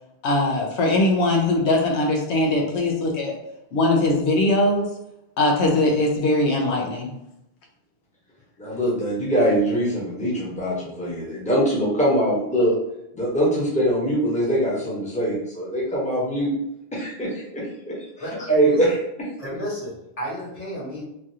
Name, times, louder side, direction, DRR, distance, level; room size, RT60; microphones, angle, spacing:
voice 1, 0.2-3.4 3.7-4.9 5.4-7.1, left 2 dB, 90° left, 0 dB, 0.9 m, -21 dB
voice 2, 8.6-12.7 13.1-16.5 16.9-17.9 18.5-18.9, right 1 dB, 5° left, -5 dB, 0.8 m, -22 dB
voice 3, 18.2-18.8 19.4-21.0, left 1 dB, 35° left, -6 dB, 1.0 m, -32 dB
3.2 x 2.4 x 2.7 m, 0.83 s
omnidirectional pair, 1.1 m